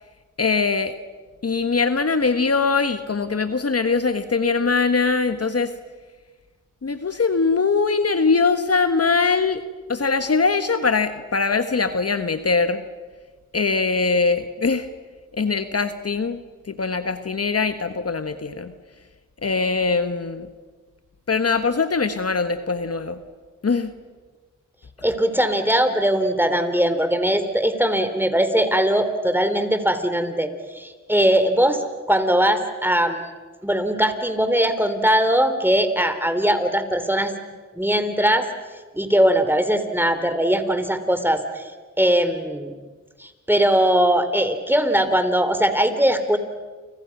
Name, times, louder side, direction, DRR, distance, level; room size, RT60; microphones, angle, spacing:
voice 1, 0.4-0.9 1.4-5.7 6.8-9.6 9.9-12.8 13.5-14.9 15.3-16.4 16.7-18.7 19.4-20.5 21.3-23.2 23.6-23.9, left 4 dB, 50° left, 10 dB, 1.4 m, -22 dB
voice 2, 25.0-33.2 33.6-37.3 37.8-38.5 38.9-41.7 42.0-42.7 43.2-46.4, right 1 dB, 5° right, 9 dB, 3.7 m, -20 dB
29.5 x 25.5 x 6.1 m, 1.3 s
cardioid pair, 45°, 31 cm